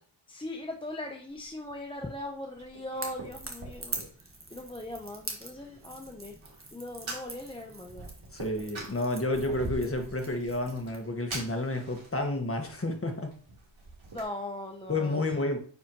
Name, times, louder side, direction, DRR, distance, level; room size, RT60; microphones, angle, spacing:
voice 1, 0.3-4.0 4.5-6.3 6.7-8.1 14.1-15.2, left 1 dB, 10° left, 2 dB, 0.8 m, -39 dB
Fire, 1.3-14.2, right 2 dB, 75° right, 3.4 m, -45 dB
Crackle / Crack, 2.9-11.1, right 2 dB, 30° right, 1.5 m, -44 dB
voice 2, 8.3-13.3 14.9-15.6, left 2 dB, 30° left, 4 dB, 1.4 m, -30 dB
9.6 x 4.1 x 3.0 m, 0.43 s
wide cardioid pair, 85°, 46 cm